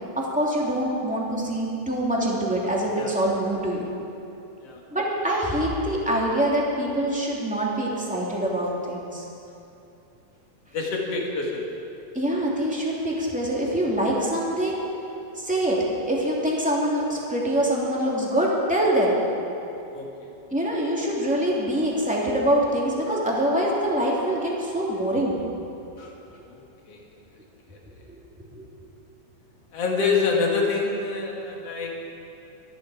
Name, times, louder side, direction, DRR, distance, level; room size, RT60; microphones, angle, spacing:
voice 1, 0.2-3.9 4.9-9.2 12.1-14.8 15.4-15.8 16.1-19.2 20.5-25.4 28.1-28.2 28.5-28.6, right 1 dB, 5° right, -4 dB, 2.1 m, -24 dB
voice 2, 10.7-11.6 19.9-20.1 26.0-26.1 26.4-26.6 26.9-27.0 29.7-32.0, left 4 dB, 50° left, -1 dB, 2.9 m, -26 dB
25.5 x 10.5 x 4.9 m, 2.7 s
omnidirectional pair, 3.7 m